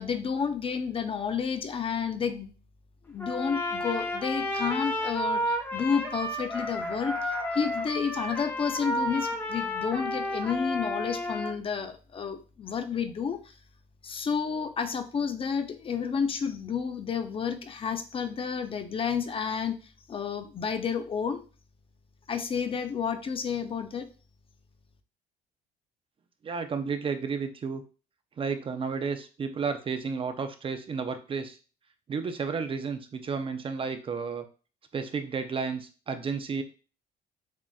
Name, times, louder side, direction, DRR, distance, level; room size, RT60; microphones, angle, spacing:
voice 1, 0.0-2.5 3.1-13.5 14.0-19.8 20.1-21.4 22.3-24.1, left 6 dB, 35° left, 8 dB, 0.5 m, -31 dB
Trumpet, 3.2-11.5, left 1 dB, 15° left, 0.8 m, -31 dB
voice 2, 26.4-27.8 28.4-31.6 32.1-34.5 34.9-36.6, right 5 dB, 30° right, 8 dB, 0.5 m, -32 dB
7.2 x 2.4 x 2.3 m, 0.35 s
cardioid pair, 110°, 17 cm